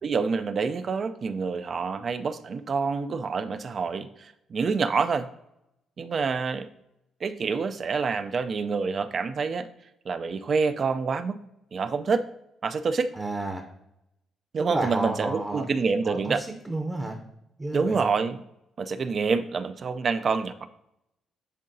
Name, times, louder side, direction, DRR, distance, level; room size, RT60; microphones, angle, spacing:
voice 1, 0.0-5.3 6.0-6.7 7.2-9.7 10.1-11.4 11.7-12.2 12.6-13.1 14.5-16.4 17.7-18.4 18.8-20.7, right 5 dB, 45° right, 10 dB, 0.4 m, -27 dB
voice 2, 13.1-13.6 14.7-15.7 16.0-17.2 17.6-18.1, right 2 dB, 20° right, 3 dB, 0.8 m, -31 dB
10.0 x 3.7 x 2.7 m, 0.84 s
cardioid pair, 90°, 0 cm